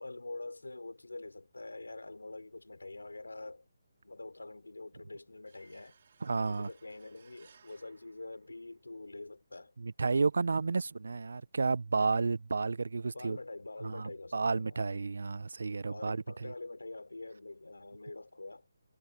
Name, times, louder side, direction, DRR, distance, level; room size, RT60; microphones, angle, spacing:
voice 1, 0.0-3.7 4.0-6.0 6.4-9.7 13.1-14.8 15.9-18.7, left 2 dB, 85° left, 4.0 m, -45 dB
sound 1, 5.5-9.0, right 6 dB, 50° right, 4.0 m, -65 dB
voice 2, 6.2-6.7 9.8-13.4 13.8-16.5, right 4 dB, 70° right, 0.6 m, -32 dB
figure-of-eight pair, 150°, 0 cm